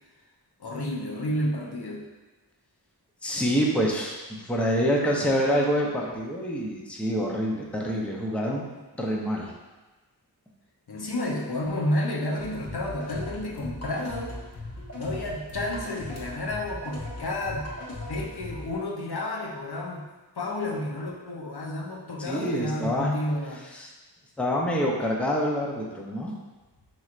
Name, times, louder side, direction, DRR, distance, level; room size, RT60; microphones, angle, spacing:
voice 1, 0.6-2.1 10.9-14.4 14.9-17.7 18.1-20.1 20.4-23.6, left 1 dB, 65° left, -2 dB, 0.7 m, -31 dB
voice 2, 3.2-8.7 8.9-9.5 22.2-23.1 23.7-23.9 24.4-26.4, equal, 5° left, -2 dB, 0.6 m, -26 dB
sound 1, 12.4-18.8, left 1 dB, 35° left, 0.9 m, -39 dB
5.5 x 3.1 x 2.4 m, 1.2 s
wide cardioid pair, 55°, 42 cm